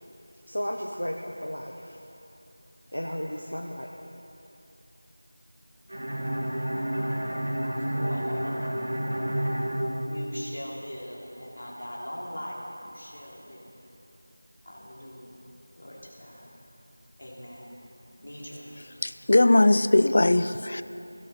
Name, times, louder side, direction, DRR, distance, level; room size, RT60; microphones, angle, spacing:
voice 1, 0.5-1.2 1.4-2.0 2.9-3.9, equal, 80° left, -1 dB, 1.2 m, -33 dB
Bowed string instrument, 5.9-10.7, right 1 dB, 50° right, 2.9 m, -30 dB
voice 2, 7.9-8.9 10.0-13.7 14.6-15.4 15.8-16.5 17.2-17.7 18.2-18.7, equal, 55° left, -4 dB, 3.2 m, -41 dB
voice 3, 19.0-20.8, left 2 dB, 35° left, 13 dB, 0.4 m, -20 dB
16.5 x 12.0 x 4.3 m, 2.9 s
figure-of-eight pair, 175°, 0 cm